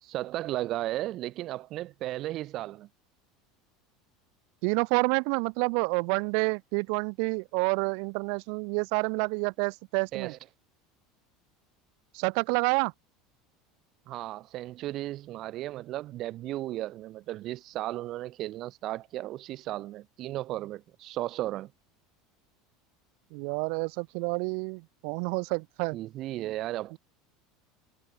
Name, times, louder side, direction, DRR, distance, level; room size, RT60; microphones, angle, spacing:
voice 1, 0.0-2.9 10.1-10.4 14.1-21.7 25.9-27.0, right 15 dB, 45° right, 0.6 m, -35 dB
voice 2, 4.6-10.3 12.1-12.9 23.3-26.0, right 40 dB or more, 65° right, 1.6 m, -28 dB
supercardioid pair, 145°, 0 cm